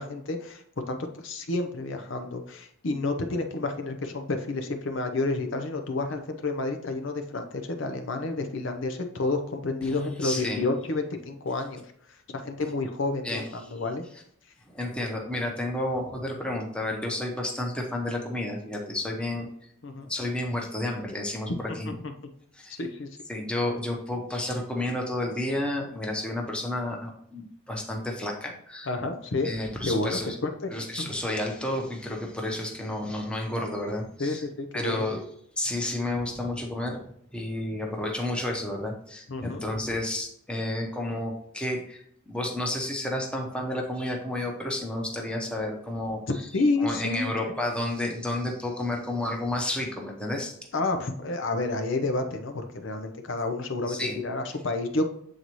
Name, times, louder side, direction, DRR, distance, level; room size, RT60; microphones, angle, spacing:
voice 1, 0.0-11.8 12.3-14.0 19.8-20.1 21.5-21.6 21.9-22.0 22.8-23.1 28.9-29.5 29.8-30.7 31.0-31.1 34.2-35.0 39.3-39.6 46.3-47.5 50.7-55.1, left 2 dB, 65° left, 6 dB, 0.7 m, -30 dB
voice 2, 9.8-10.7 13.2-13.7 14.7-19.5 20.0-21.9 22.5-22.8 23.3-28.9 29.4-30.4 30.7-34.4 34.7-35.3 35.6-46.5 46.8-50.5 53.9-54.2, left 1 dB, 5° left, 0 dB, 0.9 m, -31 dB
7.7 x 4.0 x 3.0 m, 0.68 s
head